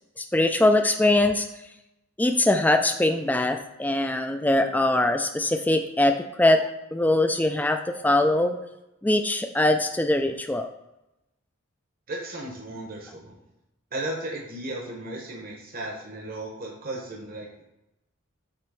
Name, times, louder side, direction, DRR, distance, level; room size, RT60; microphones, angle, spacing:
voice 1, 0.2-1.5 2.2-8.6 9.0-10.7, left 1 dB, 10° left, 6 dB, 0.3 m, -22 dB
voice 2, 12.1-13.4 13.9-17.6, right 1 dB, 45° right, -1 dB, 0.9 m, -35 dB
7.5 x 3.0 x 4.7 m, 0.89 s
head